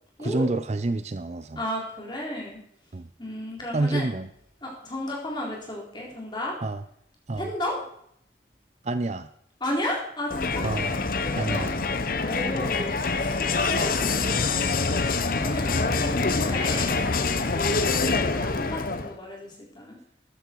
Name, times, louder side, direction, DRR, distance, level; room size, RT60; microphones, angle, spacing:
voice 1, 0.2-1.6 2.9-3.1 3.7-4.3 6.6-6.8 7.3-7.5 8.8-9.3 10.6-10.9 11.4-11.9, right 2 dB, 35° right, 12 dB, 0.5 m, -28 dB
voice 2, 1.6-2.6 3.2-4.1 4.6-6.6 7.4-7.8 9.6-11.8 12.1-14.6 15.3-17.0 17.3-20.0, left 1 dB, 25° left, -2 dB, 4.1 m, -34 dB
Crowd, 10.3-19.2, left 4 dB, 50° left, 0.9 m, -25 dB
14.0 x 10.5 x 4.7 m, 0.68 s
head